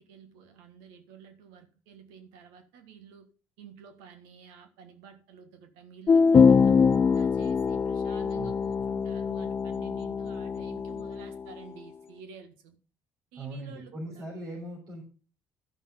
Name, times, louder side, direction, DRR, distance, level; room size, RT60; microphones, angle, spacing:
voice 1, 0.0-3.3 3.6-12.8 13.3-14.2, right 7 dB, 85° right, 1.5 m, -50 dB
sound 1, 6.1-11.4, left 5 dB, 35° left, 0.4 m, -23 dB
voice 2, 8.3-8.8 13.4-15.0, right 1 dB, 60° right, 3.8 m, -40 dB
12.0 x 5.6 x 5.3 m
supercardioid pair, 65°, 8 cm